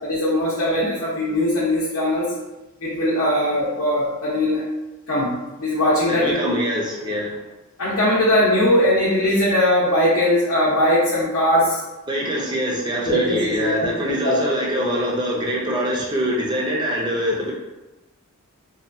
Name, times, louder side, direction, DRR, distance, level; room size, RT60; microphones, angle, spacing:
voice 1, 0.0-2.3 2.8-4.6 5.1-6.5 7.8-11.8 13.1-13.9 14.2-14.5, left 1 dB, 75° left, -7 dB, 0.6 m, -20 dB
voice 2, 6.1-7.4 12.1-17.5, equal, 20° right, -3 dB, 0.4 m, -24 dB
2.7 x 2.3 x 2.4 m, 1.1 s
head